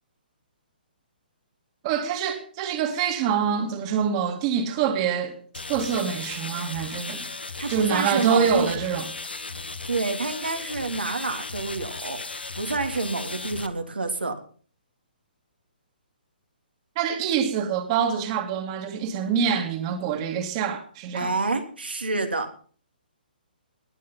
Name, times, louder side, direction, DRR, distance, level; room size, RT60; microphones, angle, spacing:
voice 1, 1.8-5.4 5.7-7.2 7.7-9.1 17.0-21.3, right 7 dB, 35° right, 2.2 m, -25 dB
sound 1, 5.5-13.7, left 3 dB, 85° left, 1.8 m, -36 dB
voice 2, 7.6-8.7 9.8-12.2 12.6-14.3 21.1-22.5, right 3 dB, 90° right, 3.1 m, -28 dB
20.0 x 8.6 x 5.7 m
figure-of-eight pair, 135°, 5 cm